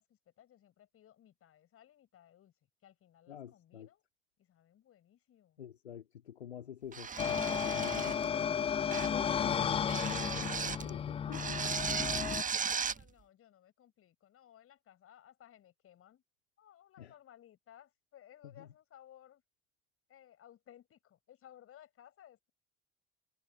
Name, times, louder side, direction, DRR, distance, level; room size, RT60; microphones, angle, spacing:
voice 1, 0.0-2.5 2.8-4.0 4.4-5.6 12.3-16.2 16.6-19.4 20.1-22.5, left 11 dB, 45° left, 6.1 m, -60 dB
voice 2, 3.3-3.9 5.6-11.6 17.0-17.1 18.4-18.7, left 9 dB, 75° left, 2.2 m, -48 dB
sound 1, 6.9-8.3 8.9-9.2 9.9-10.9 11.3-13.0, right 6 dB, 25° right, 1.4 m, -36 dB
sound 2, 7.2-12.4, left 7 dB, 20° left, 0.4 m, -33 dB
figure-of-eight pair, 55°, 32 cm